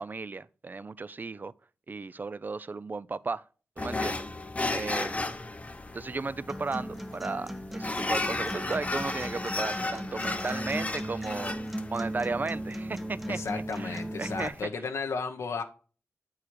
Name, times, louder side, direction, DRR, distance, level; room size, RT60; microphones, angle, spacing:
voice 1, 0.0-1.5 1.9-3.4 3.8-4.3 4.7-5.3 5.9-11.6 11.9-14.5, right 3 dB, 40° right, 0.4 m, -35 dB
sound 1, 3.8-14.6, left 2 dB, 30° left, 0.8 m, -35 dB
Acoustic guitar, 6.5-14.5, equal, 5° right, 0.8 m, -38 dB
voice 2, 13.3-15.6, left 4 dB, 80° left, 0.8 m, -34 dB
8.4 x 4.8 x 4.5 m
cardioid pair, 60°, 5 cm